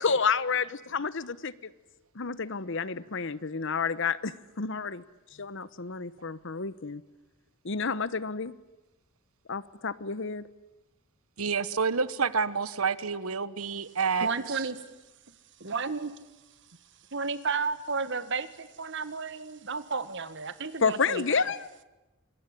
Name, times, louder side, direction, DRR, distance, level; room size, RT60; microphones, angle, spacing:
voice 1, 0.0-1.5 2.1-5.0 5.4-7.0 7.6-8.5 9.5-10.4 20.8-21.7, left 5 dB, 60° left, 17 dB, 1.0 m, -30 dB
voice 2, 11.4-14.6, right 5 dB, 85° right, 16 dB, 1.2 m, -29 dB
voice 3, 14.2-14.8 15.6-16.1 17.1-21.4, right 4 dB, 60° right, 13 dB, 1.7 m, -32 dB
26.0 x 23.0 x 10.0 m, 1.0 s
head